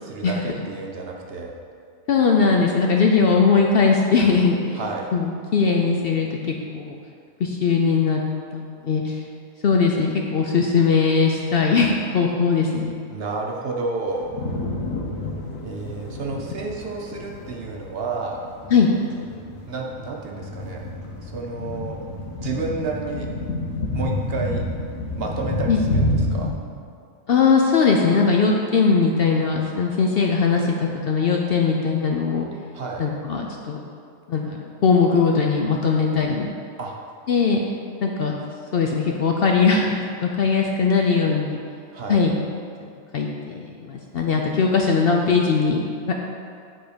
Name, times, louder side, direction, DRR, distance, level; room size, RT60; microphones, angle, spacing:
voice 1, 0.0-1.5 4.7-5.1 13.1-14.3 15.6-18.4 19.7-20.8 21.2-22.0 22.4-23.3 23.9-24.6 25.2-26.5 32.7-33.0 36.8-36.9 41.9-42.2, right 3 dB, 55° right, 0 dB, 0.9 m, -30 dB
voice 2, 2.1-4.8 5.1-7.0 7.4-8.2 8.5-9.2 9.6-12.9 14.7-14.8 18.7-18.9 25.7-25.8 27.3-32.5 33.0-33.8 34.3-36.5 37.3-37.6 38.0-38.3 38.7-41.6 42.1-42.3 43.1-46.1, left 5 dB, 60° left, 0 dB, 0.6 m, -20 dB
sound 1, 14.1-26.5, left 1 dB, 75° left, 1.3 m, -29 dB
9.3 x 3.7 x 5.0 m, 2.4 s
omnidirectional pair, 1.4 m